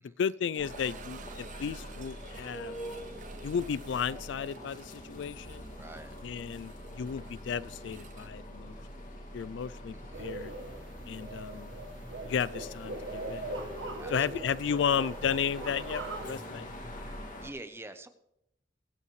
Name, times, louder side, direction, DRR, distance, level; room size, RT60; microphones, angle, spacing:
voice 1, 0.2-2.8 3.4-5.7 6.2-8.7 9.3-10.5 11.1-11.7 12.3-13.4 14.1-16.7, left 7 dB, 70° left, 19 dB, 0.3 m, -33 dB
sound 1, 0.5-9.4 9.7-9.8 10.4-10.5 13.1-13.2, right 5 dB, 45° right, 0.5 m, -51 dB
sound 2, 0.6-17.5, equal, 45° left, 2.0 m, -44 dB
voice 2, 5.8-6.1 9.9-10.3 14.0-14.4 17.4-18.1, right 2 dB, 15° right, 10 dB, 0.8 m, -46 dB
sound 3, 10.1-16.3, right 2 dB, 80° right, 1.4 m, -41 dB
22.5 x 8.4 x 3.2 m, 0.80 s
head